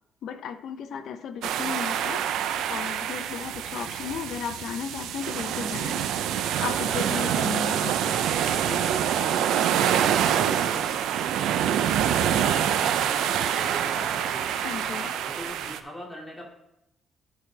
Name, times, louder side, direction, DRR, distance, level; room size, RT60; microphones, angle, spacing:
voice 1, 0.2-2.3 2.7-6.1 6.6-8.2 14.5-15.1, left 7 dB, 70° left, 10 dB, 0.6 m, -35 dB
sound 1, 1.4-15.8, right 9 dB, 85° right, 0.5 m, -26 dB
voice 2, 6.9-7.4 8.5-14.5 14.8-16.4, equal, 5° left, -3 dB, 2.3 m, -40 dB
12.5 x 4.5 x 3.3 m, 0.86 s
cardioid pair, 90°, 0 cm